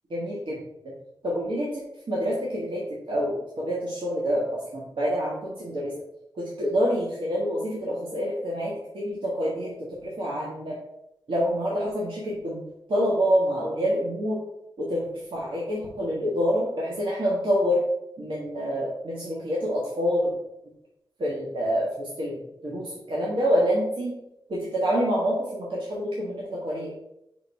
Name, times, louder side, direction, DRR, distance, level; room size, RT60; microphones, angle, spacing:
voice 1, 0.1-0.6 1.2-1.7 2.1-2.8 3.1-4.5 4.7-5.9 6.4-9.7 10.0-10.8 11.3-12.6 12.9-14.4 14.8-15.0 15.3-17.8 18.2-20.3 21.2-24.1 24.5-26.9, equal, 70° right, -6 dB, 1.5 m, -27 dB
5.2 x 3.9 x 5.1 m, 0.84 s
wide cardioid pair, 80°, 9 cm